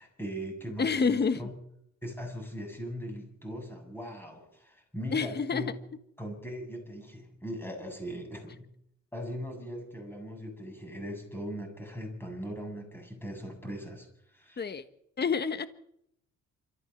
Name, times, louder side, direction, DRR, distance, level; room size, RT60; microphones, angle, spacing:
voice 1, 0.0-1.5 2.0-5.7 6.2-8.7 9.1-14.6, equal, 5° left, 7.8 m, -40 dB
voice 2, 0.8-1.4 5.1-5.7 14.6-14.8 15.2-15.7, left 5 dB, 35° left, 1.5 m, -28 dB
26.5 x 14.5 x 7.4 m
cardioid pair, 90°, 30 cm